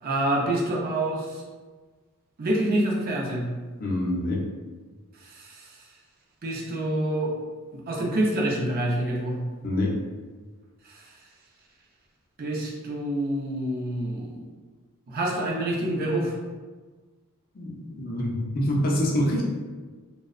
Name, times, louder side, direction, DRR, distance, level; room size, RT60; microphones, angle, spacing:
voice 1, 0.0-1.4 2.4-3.5 5.2-5.8 6.4-7.3 7.9-9.4 10.8-11.1 12.4-14.5 15.1-16.4, right 1 dB, 40° right, -2 dB, 0.4 m, -27 dB
voice 2, 3.8-4.4 9.6-10.0 17.5-19.4, left 1 dB, 40° left, -2 dB, 0.4 m, -26 dB
2.6 x 2.0 x 2.4 m, 1.4 s
head